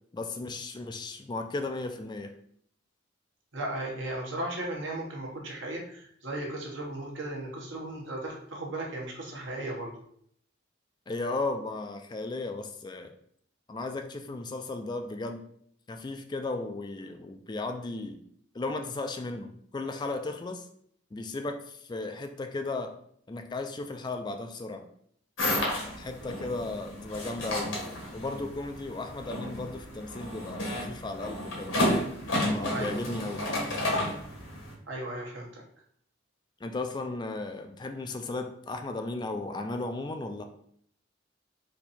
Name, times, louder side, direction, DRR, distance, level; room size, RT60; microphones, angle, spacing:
voice 1, 0.1-2.3 11.1-13.1 13.7-15.4 15.9-18.2 18.5-20.6 21.1-23.0 23.3-24.9 26.0-27.7 28.1-31.8 32.5-33.5 36.6-40.4, left 2 dB, 25° left, 6 dB, 0.3 m, -35 dB
voice 2, 3.5-10.0 32.7-33.0 34.9-35.6, right 1 dB, 70° right, -2 dB, 1.3 m, -36 dB
sound 1, 25.4-34.7, left 1 dB, 85° left, 1.5 m, -32 dB
4.4 x 2.7 x 4.1 m, 0.65 s
head